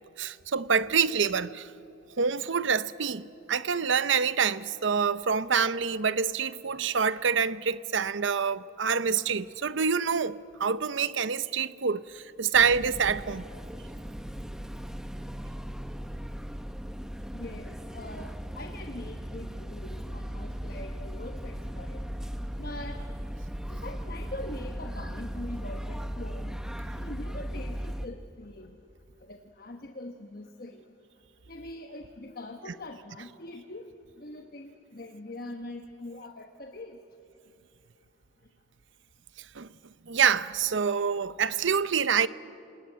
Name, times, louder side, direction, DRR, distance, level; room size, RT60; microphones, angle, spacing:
voice 1, 0.2-1.7 2.2-13.4 39.5-39.7 40.1-42.3, right 6 dB, 70° right, 0.7 m, -26 dB
sound 1, 12.5-28.1, equal, 5° right, 0.8 m, -37 dB
voice 2, 17.3-22.1 22.6-23.1 23.7-26.6 27.0-28.8 29.2-30.9 31.5-33.9 34.2-37.0, left 1 dB, 50° left, 1.1 m, -43 dB
26.5 x 20.5 x 9.2 m
head